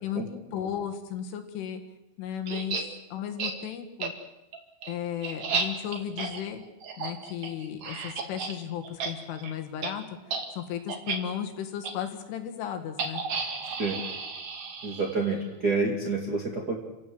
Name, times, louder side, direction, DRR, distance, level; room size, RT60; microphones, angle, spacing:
voice 1, 0.0-1.8 2.2-2.8 3.1-4.1 4.9-6.6 7.0-10.0 10.5-13.3, left 9 dB, 75° left, 5 dB, 4.3 m, -35 dB
sound 1, 2.5-2.8 3.4-3.5 4.0-4.1 4.5-8.5 8.8-9.1 9.4-9.5 9.8-9.9 10.3-10.4 10.9-11.2 11.8-11.9 13.0-15.3, right 5 dB, 45° right, 2.7 m, -33 dB
voice 2, 14.8-16.8, right 3 dB, 30° right, 0 dB, 1.9 m, -28 dB
29.0 x 17.0 x 7.9 m, 0.98 s
omnidirectional pair, 5.9 m